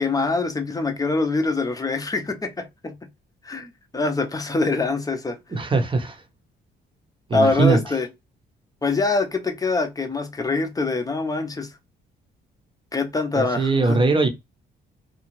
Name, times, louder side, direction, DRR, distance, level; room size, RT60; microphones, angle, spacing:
voice 1, 0.0-2.9 3.4-5.4 7.3-8.1 8.8-11.7 12.9-14.0, left 3 dB, 20° left, 0.6 m, -24 dB
voice 2, 5.5-6.2 7.3-7.8 13.3-14.3, right 3 dB, 25° right, 0.8 m, -20 dB
2.7 x 2.4 x 3.0 m
cardioid pair, 90°, 20 cm